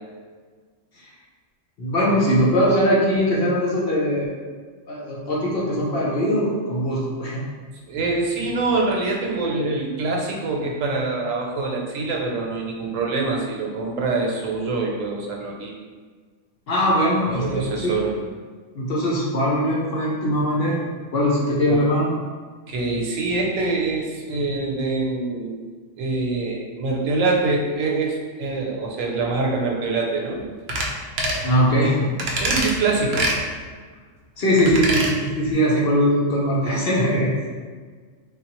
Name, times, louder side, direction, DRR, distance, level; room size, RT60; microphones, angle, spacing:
voice 1, 1.8-4.3 4.9-7.4 16.7-18.0 18.7-20.8 21.1-22.1 31.4-32.1 34.4-37.3, equal, 55° left, -5 dB, 0.8 m, -21 dB
voice 2, 7.8-15.7 16.9-17.0 17.3-18.1 21.6-21.8 22.7-25.6 26.0-30.4 32.4-33.3, right 3 dB, 85° right, -1 dB, 1.0 m, -25 dB
sound 1, 30.7-30.9 31.2-31.4 32.2-32.7 33.1-33.4 34.6-35.1 35.5-35.6, right 1 dB, 65° right, 0.7 m, -24 dB
3.5 x 2.3 x 2.9 m, 1.5 s
omnidirectional pair, 1.3 m